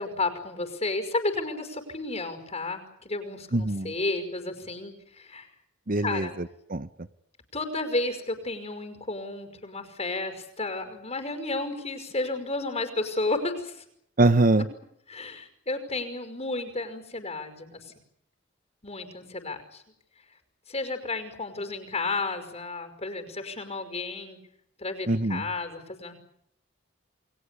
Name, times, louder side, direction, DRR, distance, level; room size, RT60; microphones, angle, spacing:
voice 1, 0.0-5.5 6.0-6.4 7.5-13.8 15.1-17.9 18.8-19.8 20.7-24.4 24.8-26.2, left 2 dB, 35° left, 7 dB, 5.5 m, -32 dB
voice 2, 3.5-3.9 5.9-6.9 14.2-14.6 25.1-25.4, right 2 dB, 45° right, 13 dB, 1.1 m, -23 dB
30.0 x 21.5 x 8.4 m, 0.74 s
head